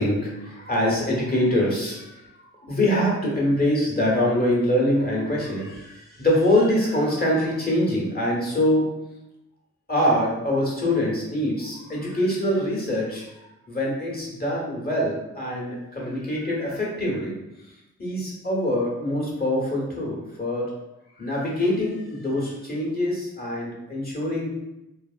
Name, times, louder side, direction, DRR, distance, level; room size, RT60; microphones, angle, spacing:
voice 1, 0.0-8.9 9.9-17.4 18.0-20.7 21.2-24.5, left 1 dB, 30° left, -5 dB, 1.1 m, -24 dB
3.3 x 2.0 x 2.4 m, 0.94 s
cardioid pair, 50°, 33 cm